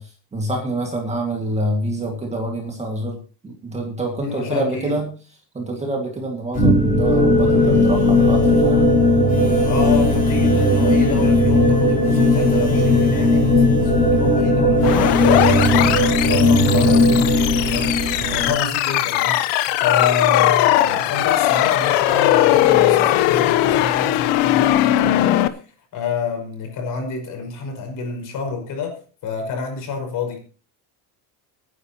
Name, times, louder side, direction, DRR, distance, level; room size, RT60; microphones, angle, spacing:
voice 1, 0.0-5.2 5.5-8.9 18.2-18.4, right 1 dB, 15° right, 1 dB, 2.0 m, -26 dB
voice 2, 4.2-4.9 9.7-25.6 25.9-30.4, left 6 dB, 45° left, 4 dB, 5.5 m, -27 dB
sound 1, 6.5-18.5, left 1 dB, 20° left, 4.9 m, -16 dB
sound 2, 14.8-25.5, left 14 dB, 85° left, 1.2 m, -19 dB
24.0 x 9.9 x 2.9 m, 0.37 s
cardioid pair, 180°, 43 cm